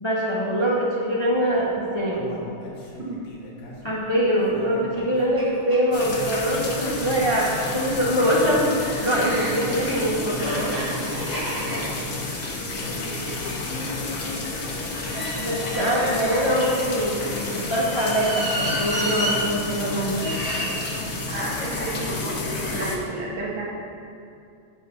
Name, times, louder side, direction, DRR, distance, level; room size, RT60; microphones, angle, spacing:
voice 1, 0.0-2.3 3.8-8.7 9.0-10.7 15.1-17.2 17.5-20.2, equal, 40° left, -5 dB, 0.4 m, -23 dB
Human voice, 1.6-5.7 6.1-6.2 6.7-6.8, left 2 dB, 75° left, 2.3 m, -40 dB
sound 1, 4.9-5.0 5.4-5.5 5.7-6.6 7.5-13.7 14.9-17.1 17.8-19.4 20.1-20.7, equal, 10° right, 1.8 m, -32 dB
sound 2, 5.9-23.0, left 2 dB, 55° left, 1.6 m, -30 dB
voice 2, 13.0-13.4 21.3-23.7, right 2 dB, 70° right, -4 dB, 2.2 m, -32 dB
10.0 x 4.2 x 5.6 m, 2.5 s
omnidirectional pair, 2.3 m